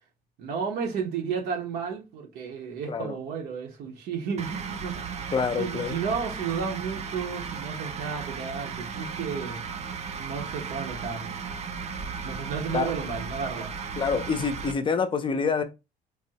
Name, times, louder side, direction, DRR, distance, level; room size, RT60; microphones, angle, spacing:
voice 1, 0.4-5.2 5.6-9.6 10.2-11.5 12.2-13.7, right 6 dB, 75° right, 0.9 m, -33 dB
sound 1, 4.4-14.7, right 5 dB, 40° right, 0.4 m, -35 dB
voice 2, 5.3-6.0 12.7-12.9 14.0-15.6, left 5 dB, 30° left, 0.5 m, -26 dB
3.5 x 2.1 x 2.7 m
cardioid pair, 110°, 17 cm